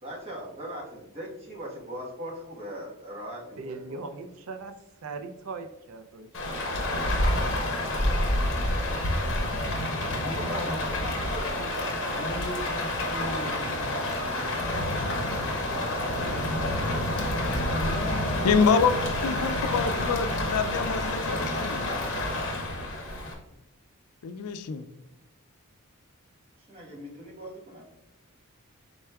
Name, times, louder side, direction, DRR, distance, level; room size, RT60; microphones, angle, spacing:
voice 1, 0.0-4.0 8.1-8.5 9.7-12.1 15.6-17.8 21.2-22.2 26.7-27.8, right 1 dB, 30° right, -5 dB, 1.2 m, -41 dB
voice 2, 3.6-4.7 5.0-7.0, right 3 dB, 70° right, 8 dB, 0.4 m, -40 dB
Rain, 6.3-23.3, left 1 dB, 60° left, 0.9 m, -28 dB
voice 3, 10.1-10.9 12.1-14.6 15.5-16.2 17.7-19.0, equal, 35° left, 0 dB, 0.8 m, -38 dB
voice 4, 18.4-19.0 19.2-21.9 24.2-24.9, left 5 dB, 90° left, 11 dB, 0.4 m, -26 dB
4.6 x 4.1 x 2.2 m, 0.88 s
head